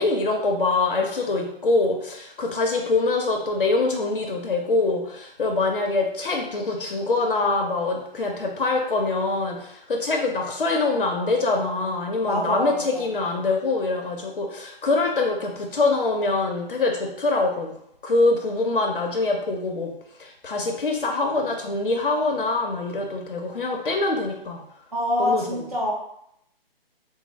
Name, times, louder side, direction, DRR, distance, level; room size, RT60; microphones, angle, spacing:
voice 1, 0.0-17.7 18.0-19.9 20.2-24.6 25.2-25.6, left 3 dB, 65° left, 2 dB, 0.6 m, -24 dB
voice 2, 12.2-13.1 24.9-25.9, left 1 dB, 40° right, -4 dB, 0.6 m, -26 dB
3.9 x 2.0 x 3.0 m, 0.76 s
hypercardioid pair, 180°, 30 cm